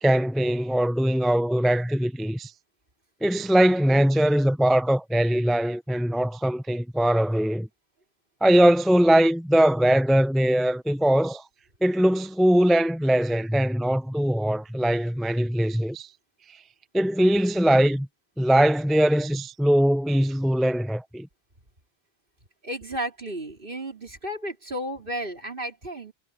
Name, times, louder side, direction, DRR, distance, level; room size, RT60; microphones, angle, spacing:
voice 1, 0.0-2.5 3.2-7.7 8.4-11.4 11.8-16.1 16.5-16.6 16.9-18.1 18.4-21.3, right 1 dB, ahead, 0.4 m, -21 dB
voice 2, 22.6-26.1, right 1 dB, 55° right, 4.4 m, -33 dB
omnidirectional pair, 1.1 m